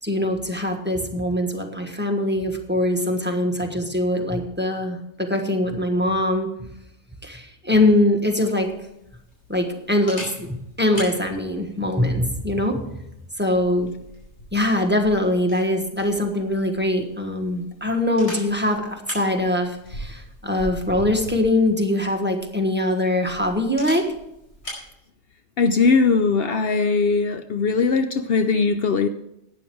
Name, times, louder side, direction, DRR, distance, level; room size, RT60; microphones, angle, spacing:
voice 1, 0.0-6.7 7.2-8.7 9.5-12.8 13.4-13.9 14.5-24.1, left 1 dB, 10° right, 1.4 m, -22 dB
Camera, 8.2-24.9, equal, 75° left, 5.2 m, -41 dB
voice 2, 25.6-29.1, left 4 dB, 60° left, 0.8 m, -20 dB
12.0 x 9.4 x 4.6 m
omnidirectional pair, 1.2 m